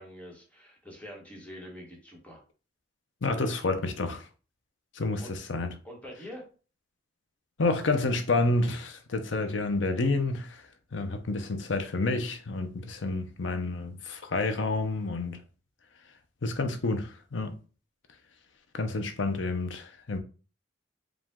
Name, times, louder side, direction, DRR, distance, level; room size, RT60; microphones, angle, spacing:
voice 1, 0.0-2.4 5.2-5.3 5.8-6.4, equal, 10° left, 1.4 m, -45 dB
voice 2, 3.2-4.3 4.9-5.7 7.6-10.7 10.9-15.4 16.4-17.5 18.7-20.2, left 3 dB, 80° left, 0.7 m, -29 dB
5.0 x 2.4 x 3.7 m
head